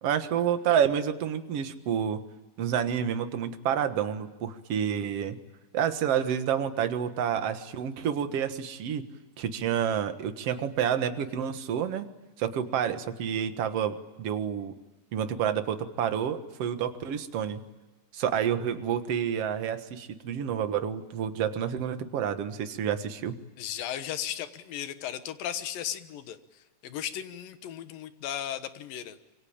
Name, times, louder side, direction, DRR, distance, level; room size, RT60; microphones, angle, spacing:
voice 1, 0.0-2.2 2.6-5.4 5.7-9.1 9.4-12.1 12.4-14.7 15.1-17.6 18.1-23.4, right 8 dB, 55° right, 8 dB, 2.2 m, -29 dB
voice 2, 23.6-29.2, left 10 dB, 85° left, 10 dB, 3.0 m, -36 dB
26.5 x 23.5 x 8.8 m, 1.1 s
omnidirectional pair, 3.9 m